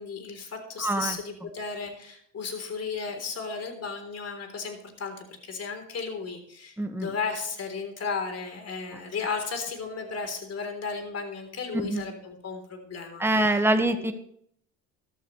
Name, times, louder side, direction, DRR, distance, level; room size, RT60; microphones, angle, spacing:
voice 1, 0.0-13.6, left 5 dB, 45° left, 6 dB, 3.7 m, -34 dB
voice 2, 0.8-1.2 6.8-7.1 11.7-12.0 13.2-14.1, right 1 dB, 5° right, 6 dB, 1.6 m, -25 dB
14.0 x 12.0 x 3.2 m, 0.67 s
supercardioid pair, 65°, 34 cm